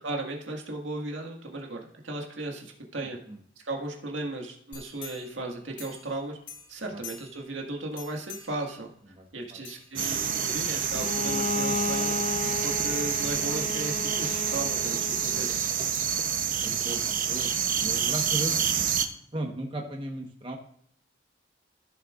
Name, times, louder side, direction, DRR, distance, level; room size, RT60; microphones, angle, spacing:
voice 1, 0.0-3.2 3.6-6.4 6.7-8.9 9.3-12.1 12.6-15.6, right 2 dB, 90° right, 1 dB, 1.9 m, -36 dB
sound 1, 4.7-6.2 6.5-7.5 7.9-8.7 9.6-10.8 11.2-11.3, left 5 dB, 75° left, 2.9 m, -45 dB
sound 2, 10.0-19.1, right 7 dB, 45° right, 0.9 m, -28 dB
Bowed string instrument, 10.9-15.6, left 3 dB, 40° left, 0.5 m, -34 dB
voice 2, 16.3-18.6 19.3-20.6, right 1 dB, 30° right, 1 dB, 1.2 m, -36 dB
15.5 x 6.7 x 2.5 m, 0.65 s
head